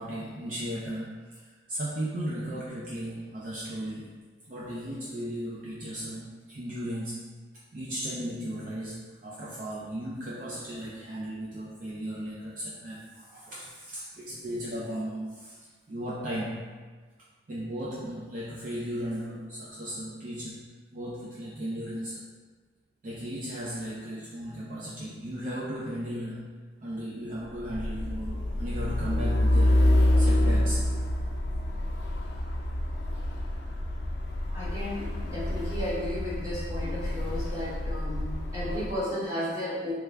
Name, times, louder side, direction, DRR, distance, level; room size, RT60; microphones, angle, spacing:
voice 1, 0.0-4.1 4.5-7.2 7.7-15.6 15.9-16.7 17.5-20.7 20.9-22.2 23.0-26.5 26.8-29.9 30.2-30.9, equal, 45° right, -7 dB, 0.4 m, -36 dB
Truck, 27.6-39.0, left 1 dB, 75° left, 0.4 m, -27 dB
voice 2, 34.5-39.9, left 1 dB, 20° right, -10 dB, 1.2 m, -34 dB
3.2 x 2.3 x 3.4 m, 1.4 s
head